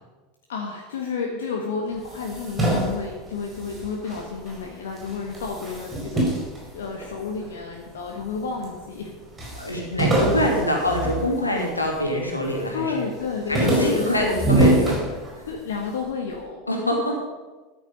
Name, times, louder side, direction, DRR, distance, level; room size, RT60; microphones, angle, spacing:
voice 1, 0.5-6.3 6.7-9.1 12.7-14.3 15.5-16.6, left 5 dB, 65° left, 1 dB, 1.5 m, -31 dB
sound 1, 2.0-4.6 5.0-7.5 8.1-8.8 9.0-9.1 9.4-12.0 12.4-12.8 13.1-15.7, right 1 dB, 20° right, 4.7 m, -25 dB
voice 2, 9.6-13.0 13.5-15.2 16.7-17.2, left 1 dB, 85° left, 0 dB, 2.6 m, -24 dB
13.0 x 10.0 x 5.3 m, 1.3 s
figure-of-eight pair, 80°, 0 cm